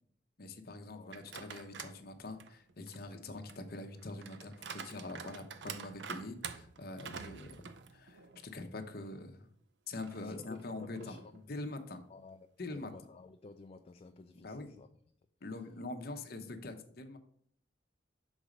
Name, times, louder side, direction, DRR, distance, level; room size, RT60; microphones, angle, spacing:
voice 1, 0.4-7.6 7.9-9.5 9.9-12.0 12.6-12.9 14.4-14.7 15.4-17.2, left 2 dB, 55° left, 0.8 m, -44 dB
sound 1, 1.1-2.0 2.4-8.5 8.9-9.0 9.9-11.4, right 6 dB, 75° right, 0.5 m, -48 dB
voice 2, 10.1-11.3 12.1-14.9, left 3 dB, 35° left, 0.3 m, -53 dB
6.2 x 4.0 x 5.1 m
head